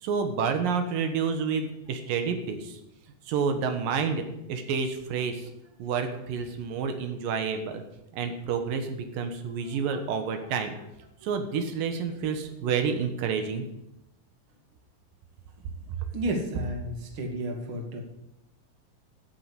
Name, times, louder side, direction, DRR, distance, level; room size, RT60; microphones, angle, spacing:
voice 1, 0.0-2.8 3.3-5.5 5.8-7.8 8.1-10.7 11.2-13.7, right 6 dB, 85° right, 7 dB, 3.1 m, -29 dB
voice 2, 9.6-10.0 15.6-15.7 16.1-18.0, right 1 dB, 40° right, 2 dB, 2.8 m, -33 dB
15.0 x 7.8 x 8.3 m, 0.87 s
omnidirectional pair, 3.8 m